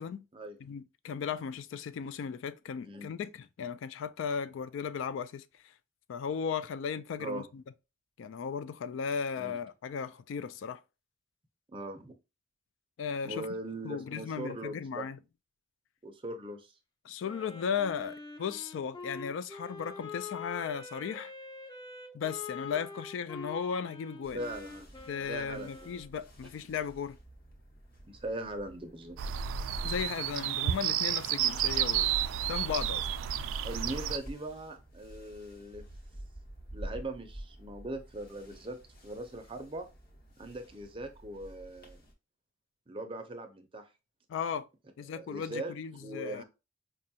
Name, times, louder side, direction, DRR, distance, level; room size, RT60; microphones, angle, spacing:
voice 1, 0.6-5.7 6.1-7.6 8.2-10.8 13.0-13.5 13.8-15.2 17.0-21.3 22.1-24.4 25.1-27.2 29.8-32.1 32.4-33.1 44.3-44.7 45.0-46.4, left 6 dB, 70° left, 0.3 m, -36 dB
voice 2, 11.7-12.1 13.2-15.0 16.0-16.7 24.3-24.9 25.2-25.9 28.0-29.2 33.6-35.8 36.7-38.8 39.0-39.9 40.4-42.0 42.9-43.9 45.1-45.7 46.0-46.4, right 1 dB, 25° right, 0.5 m, -40 dB
Wind instrument woodwind instrument, 17.2-26.1, left 4 dB, 20° left, 0.5 m, -45 dB
sound 1, 24.2-42.1, right 1 dB, 50° left, 1.1 m, -51 dB
sound 2, 29.2-34.2, right 10 dB, 80° right, 0.3 m, -31 dB
5.0 x 2.3 x 2.7 m
head